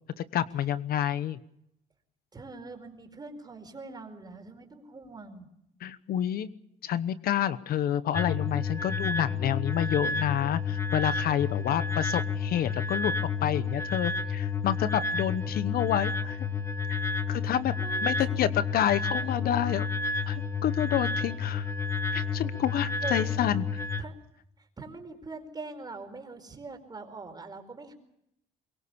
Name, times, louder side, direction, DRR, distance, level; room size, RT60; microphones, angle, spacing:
voice 1, 0.2-1.4 5.8-6.5 6.8-13.1 13.4-16.5 16.9-17.0 17.3-17.7 18.0-19.9 20.3-21.7 22.1-23.7, left 10 dB, 60° left, 15 dB, 1.0 m, -29 dB
voice 2, 2.3-5.5 17.5-18.5 18.8-19.2 23.0-23.4 24.0-24.2 24.6-27.9, right 3 dB, 25° right, 5 dB, 4.7 m, -43 dB
sound 1, 8.1-24.0, left 4 dB, 15° left, 1.2 m, -30 dB
23.0 x 23.0 x 7.1 m, 0.78 s
cardioid pair, 110°, 17 cm